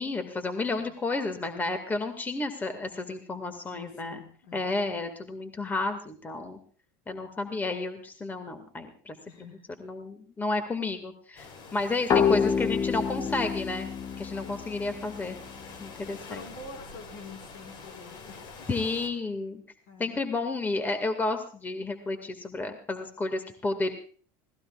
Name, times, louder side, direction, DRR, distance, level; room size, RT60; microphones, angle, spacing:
voice 1, 0.0-4.2 4.5-6.6 7.1-13.9 14.2-15.4 15.8-16.5 18.7-19.6 20.0-23.9, left 3 dB, 20° left, 7 dB, 2.1 m, -32 dB
voice 2, 3.6-4.7 9.3-9.6 12.3-12.8 13.2-13.5 14.4-14.7 16.0-18.7 19.9-20.2, left 3 dB, 75° left, 4 dB, 5.1 m, -46 dB
sound 1, 11.4-19.1, left 4 dB, 55° left, 4.0 m, -46 dB
sound 2, 12.1-15.6, left 6 dB, 35° left, 1.3 m, -27 dB
25.0 x 18.0 x 2.5 m, 0.41 s
supercardioid pair, 110°, 10 cm